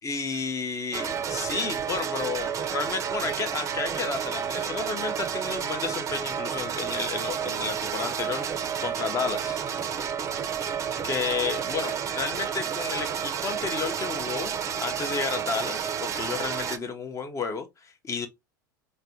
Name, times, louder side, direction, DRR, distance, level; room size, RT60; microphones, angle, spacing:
voice 1, 0.0-8.4 8.8-9.6 11.0-18.3, left 5 dB, 25° left, 0.7 m, -32 dB
sound 1, 0.9-16.8, right 8 dB, 30° right, 0.5 m, -31 dB
3.3 x 2.1 x 2.7 m
hypercardioid pair, 85°, 11 cm